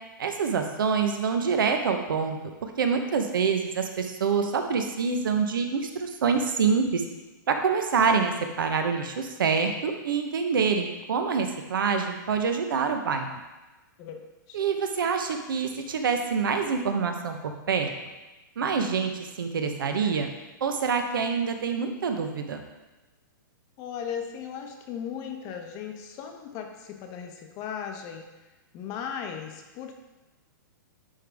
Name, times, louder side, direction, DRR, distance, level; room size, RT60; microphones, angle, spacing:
voice 1, 0.2-7.0 7.5-13.3 14.5-17.9 18.6-20.3 20.6-22.6, right 5 dB, 80° right, 5 dB, 0.9 m, -26 dB
voice 2, 14.0-14.6 23.8-28.3 28.7-30.1, left 7 dB, 30° left, 4 dB, 0.8 m, -37 dB
10.0 x 3.5 x 3.4 m, 1.1 s
hypercardioid pair, 150°, 11 cm